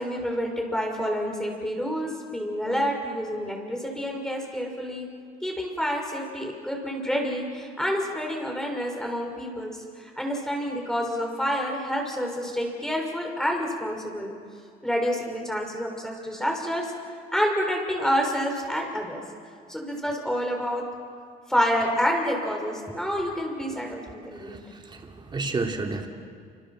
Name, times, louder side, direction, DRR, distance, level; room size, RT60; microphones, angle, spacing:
voice 1, 0.0-5.1 5.4-14.3 14.8-16.9 17.3-19.2 19.7-20.8 21.5-24.5, equal, 5° left, 1 dB, 6.4 m, -28 dB
voice 2, 24.3-26.1, right 3 dB, 25° right, 2 dB, 3.1 m, -31 dB
28.5 x 27.0 x 7.6 m, 2.2 s
cardioid pair, 110°, 17 cm